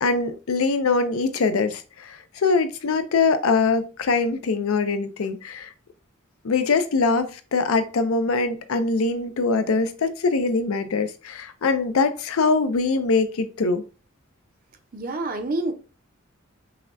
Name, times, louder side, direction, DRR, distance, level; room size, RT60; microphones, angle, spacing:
voice 1, 0.0-5.7 6.4-13.8, left 4 dB, 85° left, 0.5 m, -23 dB
voice 2, 14.9-15.7, right 2 dB, 45° right, 0.7 m, -27 dB
5.6 x 2.2 x 2.5 m
head